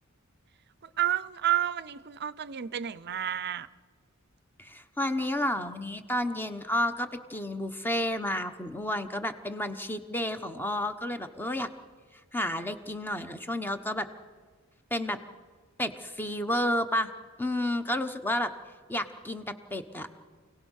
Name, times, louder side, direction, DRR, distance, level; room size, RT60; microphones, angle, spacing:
voice 1, 1.0-3.7, right 11 dB, 50° right, 0.6 m, -30 dB
voice 2, 4.6-11.7 12.3-14.1 14.9-15.2 15.8-17.1 17.4-18.5 18.9-20.1, left 1 dB, 10° left, 1.1 m, -31 dB
28.5 x 18.0 x 6.5 m
head